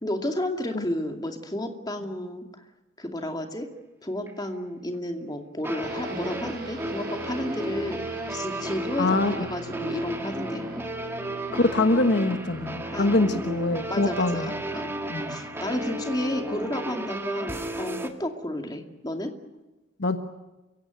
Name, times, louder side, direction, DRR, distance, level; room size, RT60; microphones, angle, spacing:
voice 1, 0.0-2.6 3.0-3.7 4.0-10.6 12.9-13.1 13.9-14.9 15.3-19.3, left 1 dB, 20° left, 4 dB, 2.4 m, -32 dB
sound 1, 4.3-4.4 5.6-18.1, right 1 dB, 10° right, 1.7 m, -34 dB
sound 2, 5.8-17.5, right 1 dB, 50° right, 4.5 m, -42 dB
voice 2, 9.0-9.3 11.5-14.5 15.1-15.4 20.0-20.2, left 2 dB, 55° left, 7 dB, 1.3 m, -24 dB
29.0 x 17.0 x 9.2 m, 1.1 s
head